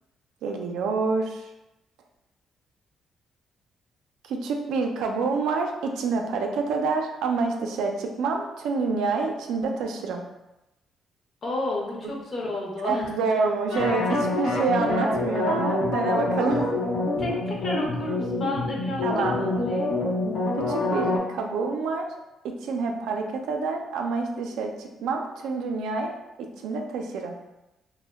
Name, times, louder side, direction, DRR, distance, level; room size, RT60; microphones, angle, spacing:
voice 1, 0.4-1.4 4.3-10.2 12.0-12.1 12.8-16.7 19.0-19.4 20.6-22.1 22.4-27.4, right 4 dB, 85° right, 3 dB, 0.3 m, -27 dB
voice 2, 11.4-13.2 17.2-20.0, left 1 dB, 45° left, -2 dB, 0.7 m, -31 dB
sound 1, 13.7-21.2, left 2 dB, 85° left, 0.8 m, -26 dB
2.1 x 2.1 x 3.3 m, 0.93 s
cardioid pair, 90°, 0 cm